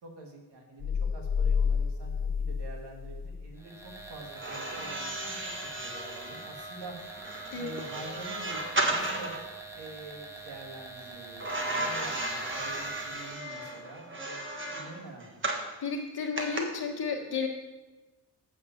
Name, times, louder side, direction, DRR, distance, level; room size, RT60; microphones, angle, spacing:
voice 1, 0.0-7.0 7.5-9.3 9.7-15.6, right 2 dB, 80° right, 1 dB, 2.2 m, -46 dB
sound 1, 0.8-3.5, left 6 dB, 45° left, 0.5 m, -29 dB
sound 2, 3.6-13.4, right 3 dB, 5° right, 1.4 m, -45 dB
sound 3, 4.3-9.5 11.4-15.7 16.4-16.6, right 2 dB, 30° right, 1.5 m, -34 dB
voice 2, 15.8-17.5, left 5 dB, 65° left, 2 dB, 1.7 m, -32 dB
7.9 x 5.9 x 7.2 m, 1.1 s
cardioid pair, 100°, 41 cm